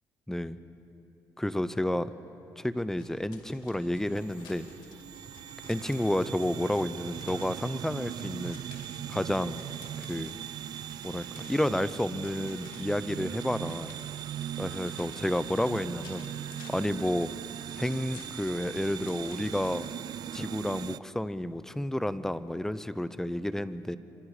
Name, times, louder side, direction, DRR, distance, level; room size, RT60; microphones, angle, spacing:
voice 1, 0.3-0.6 1.4-2.1 2.6-4.7 5.7-8.6 9.1-9.6 10.1-10.4 11.0-13.9 14.6-16.2 16.7-17.3 17.8-19.9 20.3-24.0, left 1 dB, 5° left, 14 dB, 0.8 m, -30 dB
sound 1, 3.0-21.0, left 5 dB, 85° left, 2.3 m, -54 dB
sound 2, 3.0-21.0, right 10 dB, 65° right, 0.5 m, -40 dB
26.0 x 25.5 x 5.0 m, 2.9 s
cardioid pair, 95°, 8 cm